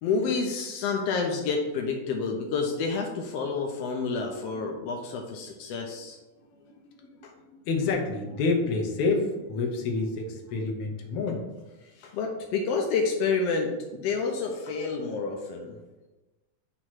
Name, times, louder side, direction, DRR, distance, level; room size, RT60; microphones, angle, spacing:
voice 1, 0.0-6.2 12.0-15.8, left 4 dB, 85° left, 1 dB, 1.4 m, -29 dB
voice 2, 6.6-7.1 7.5-11.5, left 3 dB, 70° left, 2 dB, 1.5 m, -28 dB
6.3 x 2.9 x 5.8 m, 1.1 s
omnidirectional pair, 3.6 m